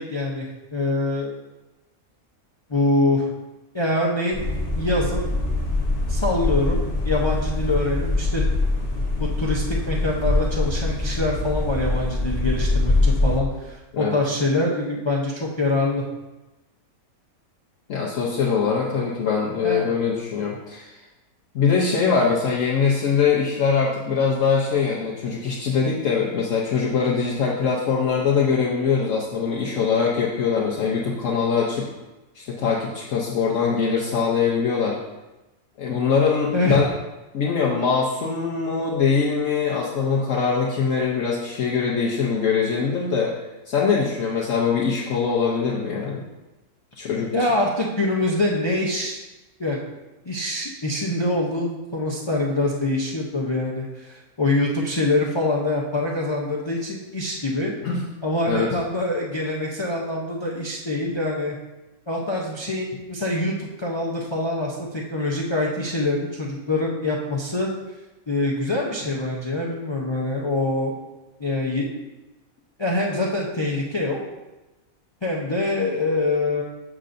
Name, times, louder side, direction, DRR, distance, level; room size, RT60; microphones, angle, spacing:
voice 1, 0.0-1.3 2.7-3.3 3.7-4.4 4.7-5.3 6.1-8.4 9.2-16.0 19.6-19.9 36.5-36.8 47.3-49.2 49.6-49.8 50.2-57.7 58.2-61.6 62.1-67.7 68.3-70.9 71.4-71.9 72.8-74.2 75.2-76.6, left 2 dB, 50° left, -2 dB, 0.3 m, -24 dB
sound 1, 4.3-13.4, left 2 dB, 35° left, 0.8 m, -23 dB
voice 2, 17.9-21.0 21.5-31.9 32.3-35.0 35.8-36.9 37.3-43.3 43.7-46.2 47.0-47.3 57.8-58.0 58.5-58.7, left 5 dB, 65° left, -3 dB, 1.1 m, -22 dB
7.3 x 6.6 x 2.5 m, 1.1 s
omnidirectional pair, 1.6 m